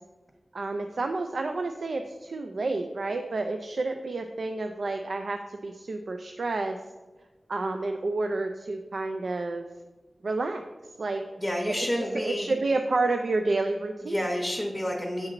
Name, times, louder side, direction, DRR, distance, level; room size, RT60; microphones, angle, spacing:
voice 1, 0.5-6.8 7.5-9.7 10.2-10.7 11.0-11.2 11.7-14.3, right 3 dB, 75° right, 6 dB, 0.3 m, -30 dB
voice 2, 11.4-12.5 14.0-15.3, equal, 15° left, -5 dB, 1.0 m, -29 dB
8.7 x 2.9 x 3.7 m, 1.2 s
wide cardioid pair, 65°, 0 cm